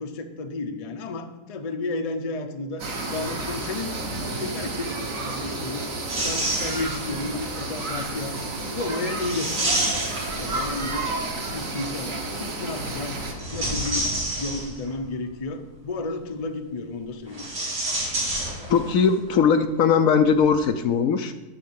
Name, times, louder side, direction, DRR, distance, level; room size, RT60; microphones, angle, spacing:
voice 1, 0.0-2.8 3.1-5.9 6.2-8.3 8.7-9.5 10.4-13.2 13.5-14.1 14.4-17.5, left 3 dB, 35° left, 6 dB, 0.6 m, -32 dB
sound 1, 2.8-13.3, right 2 dB, 55° right, 1.9 m, -31 dB
sound 2, 6.1-7.2 9.2-11.0 13.2-15.0 17.3-19.0 19.3-19.4 20.3-20.5, right 1 dB, 85° right, 4.5 m, -28 dB
voice 2, 18.7-21.3, left 6 dB, 65° left, 8 dB, 1.0 m, -20 dB
12.0 x 4.2 x 8.0 m, 1.1 s
omnidirectional pair, 1.7 m